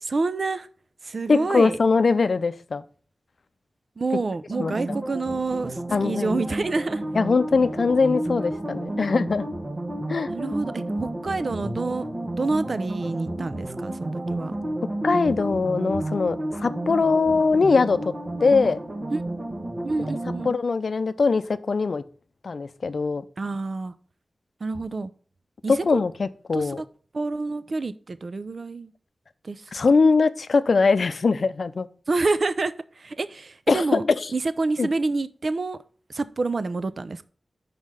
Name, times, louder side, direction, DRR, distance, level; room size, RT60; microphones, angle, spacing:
voice 1, 0.1-0.7 1.0-1.8 4.0-7.0 8.9-9.0 10.3-12.1 12.4-14.6 19.1-19.2 19.8-20.6 23.4-23.9 24.6-25.1 25.6-26.0 26.5-26.8 27.1-28.9 29.4-29.7 32.1-34.0 34.3-35.8 36.1-37.2, right 3 dB, 65° right, 0.5 m, -28 dB
voice 2, 1.3-2.8 4.6-4.7 5.9-6.4 7.1-9.5 10.1-10.3 15.0-18.1 18.4-18.8 20.4-22.0 22.4-23.3 25.7-26.8 29.7-31.9 33.7-34.0 34.8-34.9, left 4 dB, 70° left, 0.5 m, -21 dB
sound 1, 4.5-20.5, right 1 dB, 45° right, 1.3 m, -31 dB
5.5 x 5.1 x 6.2 m
cardioid pair, 50°, 0 cm